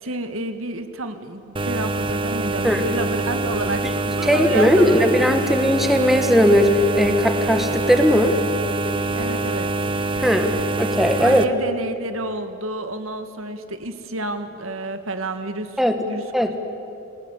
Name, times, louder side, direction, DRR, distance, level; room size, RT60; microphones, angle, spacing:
voice 1, 0.0-5.5 9.1-9.7 11.2-16.5, right 2 dB, 85° right, 8 dB, 1.8 m, -30 dB
sound 1, 1.6-11.5, right 2 dB, 25° right, 0.8 m, -25 dB
voice 2, 4.2-8.4 10.2-11.4 15.8-16.0 16.3-16.6, equal, ahead, 5 dB, 1.6 m, -18 dB
30.0 x 20.5 x 8.4 m, 2.7 s
head